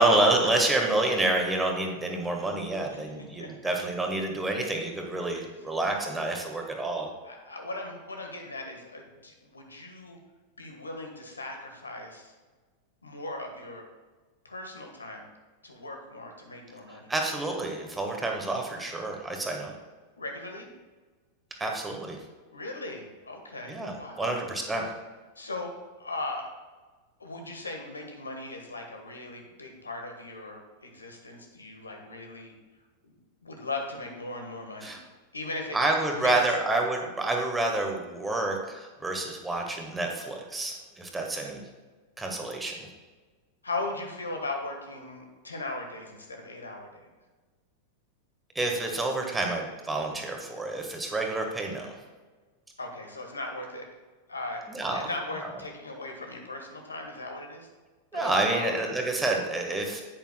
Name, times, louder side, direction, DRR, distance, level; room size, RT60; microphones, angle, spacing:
voice 1, 0.0-7.1 16.9-19.7 21.6-22.2 23.7-24.8 34.8-35.0 35.7-41.6 42.2-42.8 48.5-51.9 54.7-55.0 58.1-60.0, right 2 dB, 10° right, 2 dB, 1.5 m, -28 dB
voice 2, 2.9-3.7 5.3-5.5 7.2-10.2 10.6-12.3 13.0-13.9 14.4-15.3 15.6-17.1 20.2-20.7 22.5-24.4 25.4-26.5 27.2-32.5 33.0-33.1 33.4-35.0 35.3-35.8 36.1-36.3 43.6-47.1 52.8-53.9 54.3-54.7 54.9-57.7 58.1-58.7, left 2 dB, 75° left, 3 dB, 1.4 m, -38 dB
10.5 x 8.9 x 2.2 m, 1.3 s
figure-of-eight pair, 90°, 0 cm